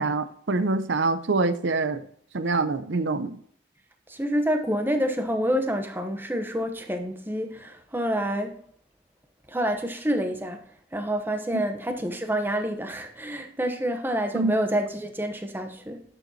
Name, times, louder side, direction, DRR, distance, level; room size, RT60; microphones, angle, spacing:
voice 1, 0.0-2.0 2.3-3.4 11.5-11.6 14.3-14.5, right 3 dB, 70° right, 0.7 m, -25 dB
voice 2, 4.1-8.6 9.5-10.6 10.9-16.0, equal, 10° right, 0.9 m, -28 dB
10.5 x 7.0 x 2.8 m
head